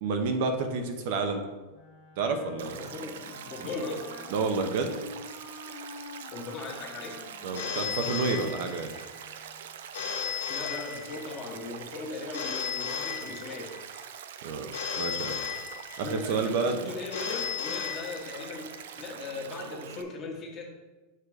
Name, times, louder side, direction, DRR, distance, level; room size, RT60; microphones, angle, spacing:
voice 1, 0.0-1.5 2.2-2.8 3.6-3.7 4.3-4.9 7.4-8.9 14.4-14.7 15.0-15.4 16.0-16.9, right 4 dB, 60° right, 6 dB, 0.8 m, -29 dB
Wind instrument woodwind instrument, 1.7-9.8, left 3 dB, 55° left, 1.4 m, -48 dB
Stream, 2.6-20.0, right 9 dB, 85° right, 0.4 m, -44 dB
voice 2, 2.7-4.0 6.3-7.2 10.5-13.7 16.0-20.6, left 3 dB, 30° left, 0 dB, 1.4 m, -38 dB
Telephone, 7.5-9.0 9.9-11.4 12.3-13.8 14.7-16.2 17.1-18.6, left 8 dB, 90° left, 1.2 m, -35 dB
6.7 x 3.7 x 5.0 m, 1.2 s
supercardioid pair, 150°, 0 cm